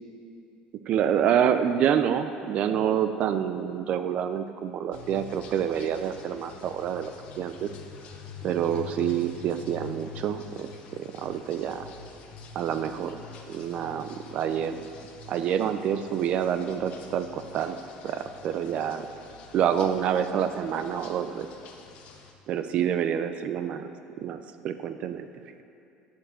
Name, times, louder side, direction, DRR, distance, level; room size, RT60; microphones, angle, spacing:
voice 1, 0.9-7.1 7.4-7.7 8.4-11.9 12.6-13.2 13.5-14.9 15.3-17.8 18.0-19.1 19.5-21.5 22.5-23.9 24.2-25.3, right 9 dB, 45° right, 9 dB, 0.5 m, -27 dB
sound 1, 4.9-22.3, left 5 dB, 55° left, 1.2 m, -46 dB
9.3 x 8.3 x 7.6 m, 2.6 s
cardioid pair, 145°, 3 cm